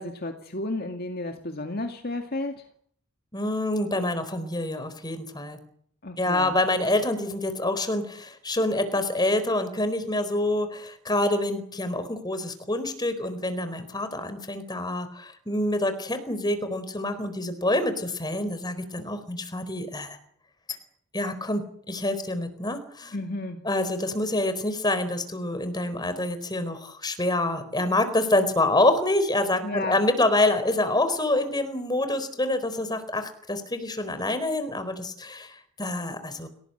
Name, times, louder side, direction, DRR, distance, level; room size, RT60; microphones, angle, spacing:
voice 1, 0.0-2.7 6.0-6.5 23.1-23.6 29.6-30.0, left 2 dB, 45° left, 5 dB, 2.2 m, -32 dB
voice 2, 3.3-5.6 6.2-20.2 20.7-20.8 21.1-23.1 23.6-36.5, left 1 dB, 20° left, 10 dB, 4.3 m, -26 dB
29.0 x 19.0 x 8.0 m, 0.63 s
head